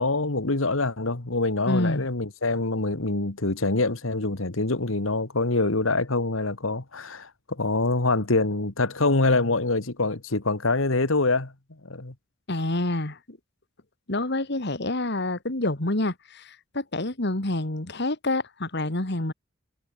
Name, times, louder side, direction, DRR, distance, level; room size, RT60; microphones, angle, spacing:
voice 1, 0.0-11.5 11.8-12.1, left 2 dB, 80° left, 1.9 m, -25 dB
voice 2, 1.7-2.1 12.5-13.4 14.1-19.3, left 2 dB, 55° left, 2.5 m, -27 dB
head